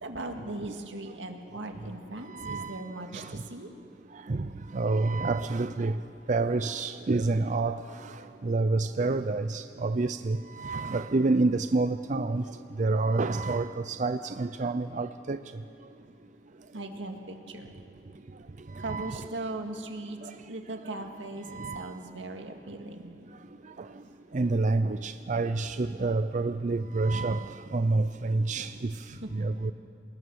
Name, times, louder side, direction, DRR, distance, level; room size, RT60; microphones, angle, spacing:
voice 1, 0.0-3.7 16.7-17.7 18.8-20.2 20.5-23.2 29.1-29.5, right 2 dB, 85° right, 2.1 m, -39 dB
voice 2, 2.3-2.8 3.1-3.4 4.3-5.9 6.3-8.1 8.4-12.4 12.8-15.4 18.8-19.3 20.2-20.3 21.5-21.9 24.3-28.9 29.3-29.7, right 3 dB, 40° right, 0.5 m, -28 dB
27.5 x 19.5 x 6.3 m
head